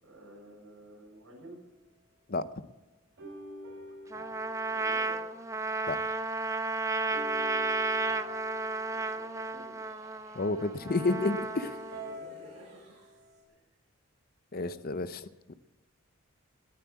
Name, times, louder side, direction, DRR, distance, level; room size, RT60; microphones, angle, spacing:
voice 1, 0.0-1.6 4.7-5.2 8.9-9.8 11.9-12.9 13.5-13.6 14.5-14.8, right 1 dB, 75° right, -4 dB, 6.7 m, -51 dB
sound 1, 3.2-5.7 7.1-9.6 10.9-13.4, equal, 55° right, 6.0 m, -47 dB
Trumpet, 4.1-12.2, right 3 dB, 15° right, 0.5 m, -33 dB
Crowd, 5.6-13.3, right 1 dB, 30° right, 6.2 m, -58 dB
voice 2, 10.4-11.8 14.5-15.5, left 3 dB, 45° left, 12 dB, 0.7 m, -31 dB
19.5 x 7.5 x 8.3 m, 1.1 s
head